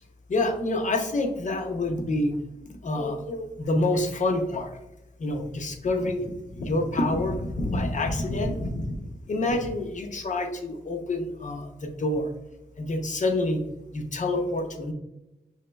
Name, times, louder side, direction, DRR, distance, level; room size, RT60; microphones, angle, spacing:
voice 1, 0.3-2.3 2.8-4.8 5.2-9.0 9.3-12.3 12.8-13.6 13.9-14.9, left 2 dB, 50° left, 5 dB, 0.6 m, -27 dB
5.5 x 3.0 x 2.2 m, 0.93 s
wide cardioid pair, 110°, 17 cm